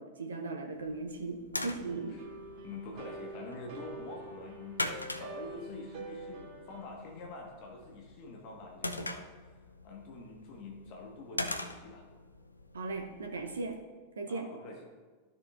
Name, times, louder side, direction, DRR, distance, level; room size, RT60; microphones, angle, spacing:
voice 1, 0.0-2.2 12.7-13.8 14.2-14.5, right 3 dB, 70° right, 3 dB, 0.7 m, -37 dB
sound 1, 0.7-13.8, left 2 dB, 85° left, 0.5 m, -43 dB
voice 2, 1.6-2.2 2.6-9.3 9.8-12.1 14.3-14.9, left 3 dB, 40° left, 0 dB, 1.4 m, -46 dB
sound 2, 1.8-6.9, right 2 dB, 45° right, 1.6 m, -46 dB
13.0 x 6.5 x 2.4 m, 1.4 s
figure-of-eight pair, 90°, 0 cm